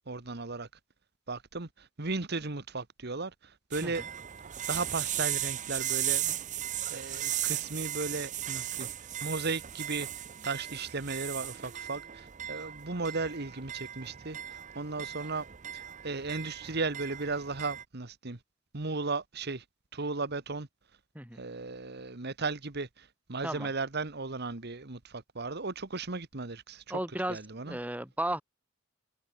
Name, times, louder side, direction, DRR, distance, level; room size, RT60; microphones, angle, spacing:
voice 1, 0.1-0.7 1.3-1.7 2.0-3.3 3.7-4.0 4.7-6.4 6.9-8.9 9.2-10.1 10.4-14.4 14.7-15.4 15.7-18.4 18.7-19.6 19.9-20.7 21.4-27.0 27.3-27.8, right 3 dB, 55° right, 1.6 m, -35 dB
sound 1, 3.7-17.8, right 11 dB, 40° right, 0.6 m, -36 dB
voice 2, 26.9-28.4, right 1 dB, 10° right, 2.8 m, -35 dB
head